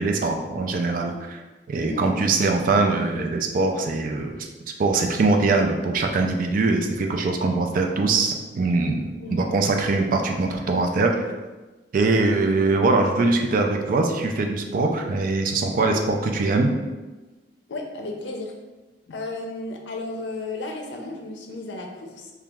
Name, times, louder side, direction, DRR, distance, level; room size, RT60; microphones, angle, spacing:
voice 1, 0.0-1.4 1.7-4.5 4.8-11.2 11.9-16.7, right 3 dB, 50° right, 3 dB, 0.4 m, -22 dB
voice 2, 17.7-18.5 19.1-22.3, left 2 dB, 80° left, 3 dB, 0.5 m, -33 dB
2.9 x 2.3 x 3.4 m, 1.2 s
head